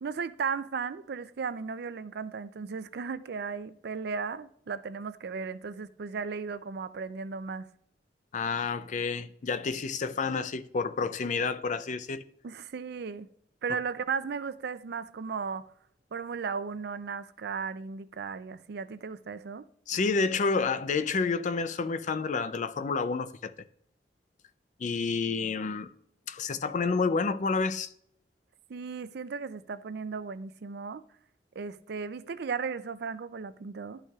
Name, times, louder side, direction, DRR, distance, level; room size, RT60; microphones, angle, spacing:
voice 1, 0.0-7.7 12.4-13.3 13.6-15.7 16.1-19.6 28.7-31.0 31.6-34.0, right 5 dB, 65° right, 0.4 m, -35 dB
voice 2, 8.3-12.2 19.9-23.5 24.8-25.9 26.3-27.9, left 4 dB, 45° left, 0.4 m, -29 dB
11.5 x 5.6 x 2.4 m
head